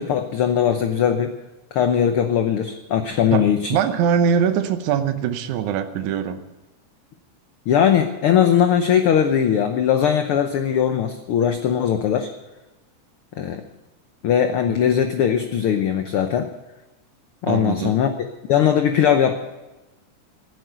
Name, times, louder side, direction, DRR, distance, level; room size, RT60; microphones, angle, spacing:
voice 1, 0.0-1.3 1.7-3.8 7.7-12.3 13.4-13.6 14.2-16.5 17.4-19.3, left 8 dB, 75° left, 7 dB, 1.3 m, -20 dB
voice 2, 3.3-6.4 14.7-14.8 17.5-18.0, right 7 dB, 80° right, 9 dB, 2.4 m, -22 dB
15.5 x 9.5 x 8.0 m, 1.1 s
omnidirectional pair, 3.5 m